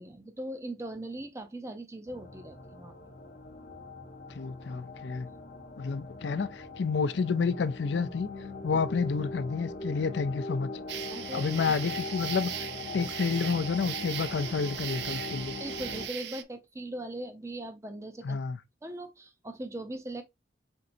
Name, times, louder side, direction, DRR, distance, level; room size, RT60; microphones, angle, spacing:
voice 1, 0.0-2.9 11.1-11.8 15.6-18.4 18.8-20.2, right 1 dB, 15° right, 0.6 m, -40 dB
sound 1, 2.1-16.1, left 3 dB, 45° left, 0.8 m, -41 dB
voice 2, 4.3-5.3 5.8-8.3 8.6-10.7 11.3-12.7 12.9-15.5 18.2-18.6, left 5 dB, 75° left, 0.4 m, -30 dB
sound 2, 10.9-16.4, right 11 dB, 70° right, 0.4 m, -38 dB
4.4 x 3.8 x 2.6 m
head